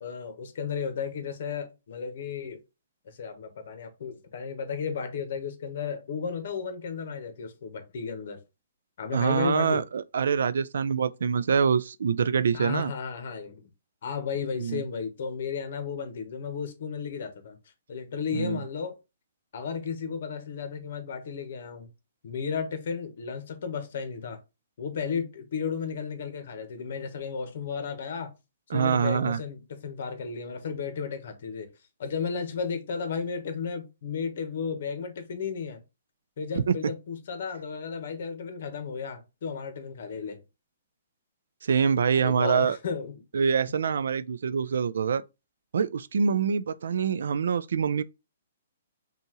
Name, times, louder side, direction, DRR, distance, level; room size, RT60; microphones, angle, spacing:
voice 1, 0.0-2.6 3.0-8.4 9.0-9.8 12.5-13.7 14.0-17.6 17.9-18.9 19.5-21.9 22.2-24.4 24.8-28.3 28.7-31.7 32.0-35.8 36.4-40.4 42.1-43.2, left 6 dB, 55° left, 1.1 m, -34 dB
voice 2, 9.1-12.9 14.6-14.8 18.3-18.6 28.7-29.4 36.6-36.8 41.6-42.8 43.3-45.2 45.7-48.0, right 6 dB, 75° right, 0.4 m, -25 dB
5.4 x 2.4 x 2.9 m
hypercardioid pair, 165°, 0 cm